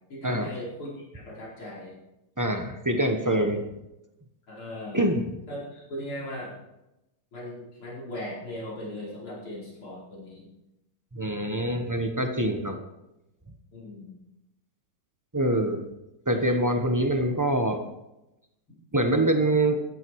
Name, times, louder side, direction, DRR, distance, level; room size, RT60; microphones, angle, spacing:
voice 1, 0.1-1.9 4.5-5.1 5.5-6.5 7.3-10.5 13.7-14.1, left 1 dB, 70° left, -6 dB, 5.6 m, -38 dB
voice 2, 2.4-3.7 4.9-5.3 11.1-12.8 15.3-15.9 16.3-17.8 18.9-19.8, right 1 dB, 25° right, 5 dB, 0.4 m, -25 dB
15.0 x 12.0 x 4.7 m, 0.93 s
omnidirectional pair, 2.4 m